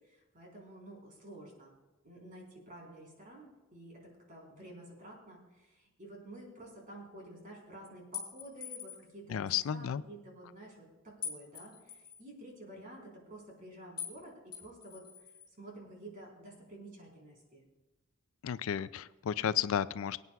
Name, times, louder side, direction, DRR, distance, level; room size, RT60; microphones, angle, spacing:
voice 1, 0.0-1.7 2.0-15.0 15.6-17.6, right 1 dB, 40° right, -1 dB, 4.0 m, -51 dB
sound 1, 8.1-9.1 11.2-12.2 14.0-14.2 14.5-15.5, left 8 dB, 20° left, 2.7 m, -43 dB
voice 2, 9.3-10.0 18.4-20.3, left 9 dB, 80° left, 16 dB, 0.4 m, -33 dB
24.0 x 9.4 x 2.3 m, 1.1 s
head